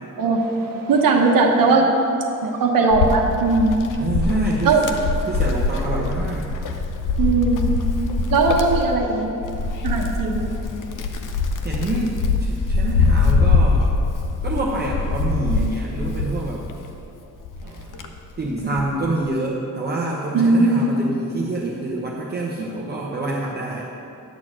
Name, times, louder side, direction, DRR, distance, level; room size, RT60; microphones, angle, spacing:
voice 1, 0.2-1.9 2.4-3.7 4.6-4.8 7.2-7.6 8.3-9.3 9.8-10.4 17.6-17.7 20.3-20.9, right 3 dB, 80° right, 1 dB, 1.1 m, -18 dB
Wind, 2.9-17.0 17.5-19.0, left 4 dB, 70° left, 0.7 m, -23 dB
voice 2, 4.0-4.8 5.2-6.5 11.6-13.9 14.4-16.6 18.4-23.9, right 2 dB, 30° right, -4 dB, 0.9 m, -26 dB
10.5 x 4.3 x 7.3 m, 2.8 s
wide cardioid pair, 120°, 33 cm